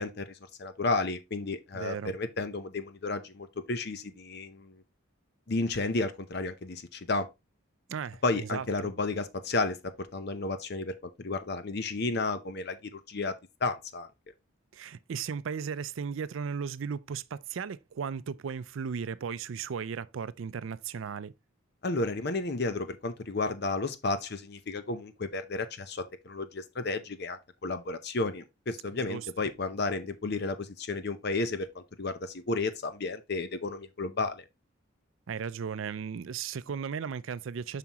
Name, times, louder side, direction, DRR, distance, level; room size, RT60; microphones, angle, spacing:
voice 1, 0.0-4.8 5.5-7.3 8.2-13.3 13.6-14.1 21.8-34.4, left 3 dB, 50° left, 0.7 m, -32 dB
voice 2, 1.7-2.2 7.9-8.7 14.7-21.3 29.0-29.3 35.3-37.8, right 6 dB, 70° right, 0.4 m, -36 dB
7.3 x 5.9 x 2.9 m
head